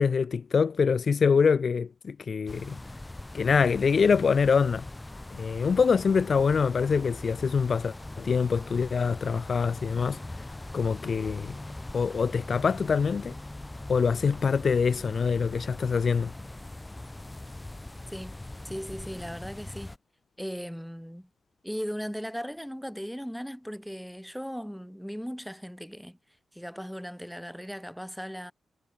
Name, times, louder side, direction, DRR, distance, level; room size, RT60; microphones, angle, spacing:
voice 1, 0.0-2.8 3.3-4.9 5.3-10.2 10.7-11.6 11.9-13.4 13.9-16.3, left 5 dB, 60° left, 0.3 m, -25 dB
sound 1, 2.5-20.0, left 2 dB, 20° left, 5.7 m, -41 dB
voice 2, 18.6-20.0 20.4-21.3 21.6-26.2 26.5-28.5, equal, ahead, 2.2 m, -37 dB
supercardioid pair, 45°, 0 cm